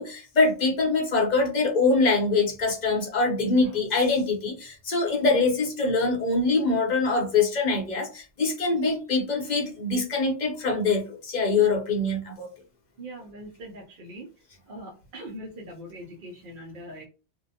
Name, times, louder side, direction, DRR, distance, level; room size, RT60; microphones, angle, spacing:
voice 1, 0.0-12.5, left 3 dB, 45° left, 2 dB, 0.8 m, -24 dB
voice 2, 13.0-14.3 14.7-17.1, right 1 dB, 55° right, -2 dB, 0.8 m, -41 dB
2.6 x 2.1 x 2.7 m, 0.34 s
omnidirectional pair, 1.1 m